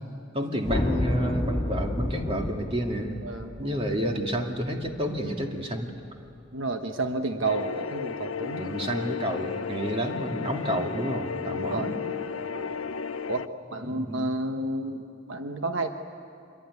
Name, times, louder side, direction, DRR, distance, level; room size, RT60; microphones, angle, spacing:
voice 1, 0.0-3.2 3.6-5.9 8.6-12.0 13.9-14.3, equal, 30° right, 2 dB, 2.3 m, -30 dB
sound 1, 0.6-5.0, left 1 dB, 25° left, 2.3 m, -30 dB
voice 2, 3.2-3.8 6.5-8.7 11.7-11.9 12.4-12.8 13.3-13.4 13.7-15.9, right 2 dB, 70° right, 6 dB, 1.3 m, -31 dB
sound 2, 7.4-13.5, left 6 dB, 85° left, 0.6 m, -34 dB
26.0 x 22.5 x 9.6 m, 2.8 s
head